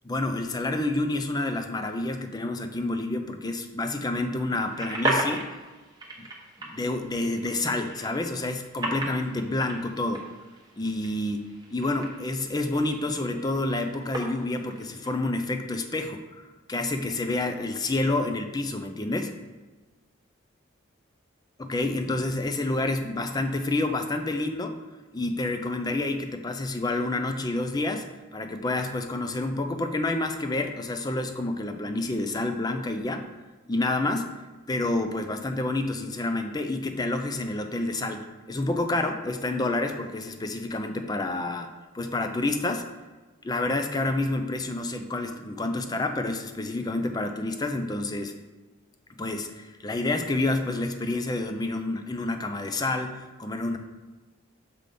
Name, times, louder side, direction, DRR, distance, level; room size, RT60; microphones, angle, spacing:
voice 1, 0.0-5.5 6.2-6.3 6.6-10.3 10.8-19.3 21.6-24.8 25.1-33.3 33.7-34.3 34.7-41.7 41.9-42.8 43.4-48.4 49.2-53.8, left 2 dB, 20° left, 6 dB, 0.4 m, -29 dB
sound 1, 4.6-15.1, right 2 dB, 20° right, 1.0 m, -36 dB
6.6 x 5.1 x 3.8 m, 1.2 s
head